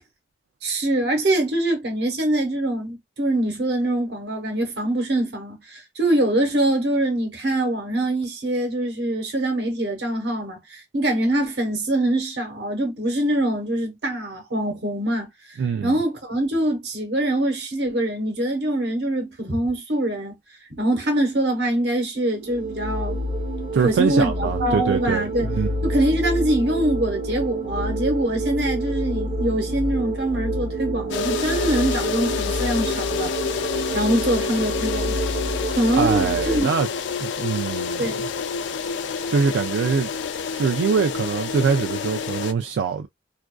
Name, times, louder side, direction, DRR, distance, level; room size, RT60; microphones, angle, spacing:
voice 1, 0.6-20.4 20.7-23.2 23.8-25.5 25.8-33.3 33.6-35.2 35.7-36.7 38.0-38.3, right 1 dB, 65° right, 1.0 m, -24 dB
voice 2, 15.6-16.0 23.7-25.9 36.0-36.9 37.2-38.1 39.3-40.1 40.5-43.1, right 6 dB, 90° right, 0.3 m, -23 dB
sound 1, 22.1-36.6, right 1 dB, 45° right, 0.8 m, -28 dB
sound 2, 31.1-42.5, left 6 dB, 80° left, 0.3 m, -28 dB
2.4 x 2.3 x 2.2 m
head